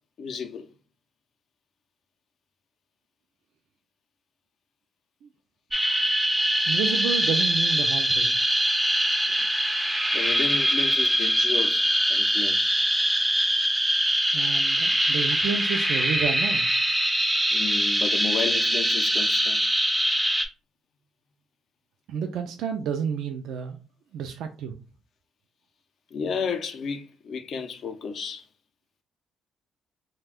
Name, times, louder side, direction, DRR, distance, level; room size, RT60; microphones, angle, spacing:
voice 1, 0.2-0.7 9.9-12.8 17.5-19.7 26.1-28.5, left 6 dB, 60° left, 0.5 m, -32 dB
sound 1, 5.7-20.4, right 1 dB, 5° right, 0.4 m, -23 dB
voice 2, 6.6-8.4 14.3-16.8 22.1-23.8 24.1-24.8, right 7 dB, 80° right, 0.3 m, -30 dB
2.4 x 2.2 x 3.4 m
cardioid pair, 90°, 0 cm